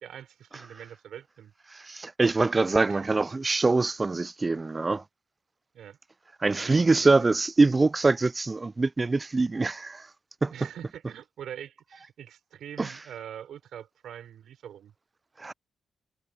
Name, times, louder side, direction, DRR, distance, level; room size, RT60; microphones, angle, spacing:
voice 1, 0.0-1.5 2.9-3.1 5.7-6.0 6.5-7.3 10.5-14.9, right 10 dB, 75° right, 3.9 m, -44 dB
voice 2, 1.7-5.0 6.4-10.1 10.4-10.5 12.8-12.9 15.4-15.5, right 3 dB, 30° right, 0.5 m, -24 dB
supercardioid pair, 50°, 0 cm